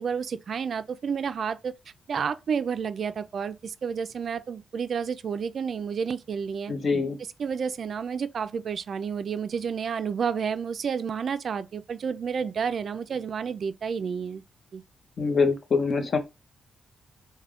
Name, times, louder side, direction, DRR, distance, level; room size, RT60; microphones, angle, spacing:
voice 1, 0.0-1.7 2.1-6.7 7.4-14.4 14.7-14.8, right 6 dB, 50° right, 0.3 m, -30 dB
voice 2, 6.7-7.2 15.2-16.2, left 4 dB, 45° left, 0.7 m, -24 dB
3.4 x 2.1 x 3.6 m
cardioid pair, 130°, 0 cm